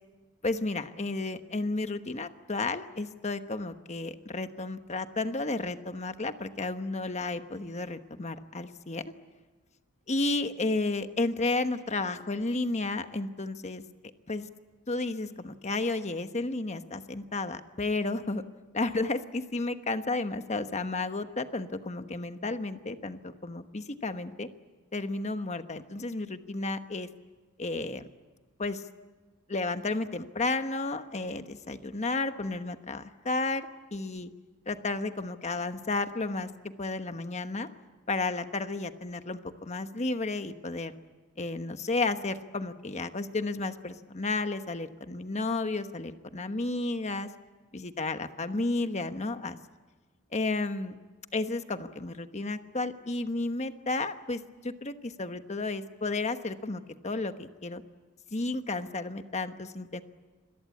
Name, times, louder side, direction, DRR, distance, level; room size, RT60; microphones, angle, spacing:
voice 1, 0.4-9.0 10.1-13.8 14.3-14.4 14.9-18.4 18.7-24.5 24.9-27.1 27.6-28.1 28.6-28.8 29.5-34.3 34.7-37.7 38.1-40.9 41.4-47.3 47.7-49.6 50.3-50.9 51.3-57.8 58.3-60.0, left 3 dB, 30° left, 9 dB, 1.1 m, -32 dB
27.0 x 22.5 x 8.5 m, 1.3 s
head